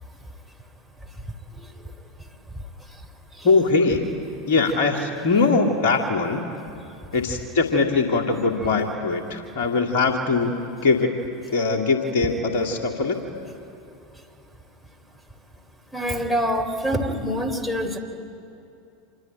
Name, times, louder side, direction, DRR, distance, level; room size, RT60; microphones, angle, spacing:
voice 1, 3.4-4.1 4.5-6.4 7.1-10.5 10.8-11.1 11.5-13.2, left 4 dB, 55° left, 4 dB, 2.6 m, -21 dB
voice 2, 15.9-18.0, equal, 5° left, 7 dB, 3.6 m, -25 dB
27.0 x 23.5 x 9.3 m, 2.7 s
figure-of-eight pair, 80°, 0 cm